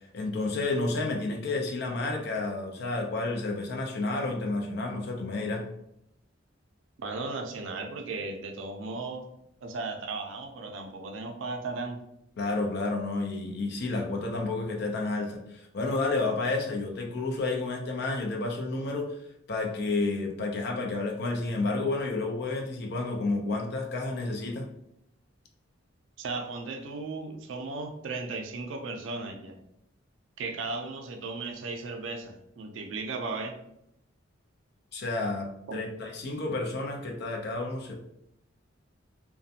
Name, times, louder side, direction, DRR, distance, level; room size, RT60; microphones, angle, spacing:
voice 1, 0.1-5.6 12.4-19.2 19.5-24.7 34.9-38.0, left 3 dB, 55° left, 2 dB, 0.5 m, -30 dB
voice 2, 7.0-9.3 9.6-12.0 26.2-29.6 30.4-33.6 35.7-35.8, right 3 dB, 70° right, 4 dB, 0.4 m, -36 dB
2.4 x 2.2 x 2.7 m, 0.79 s
head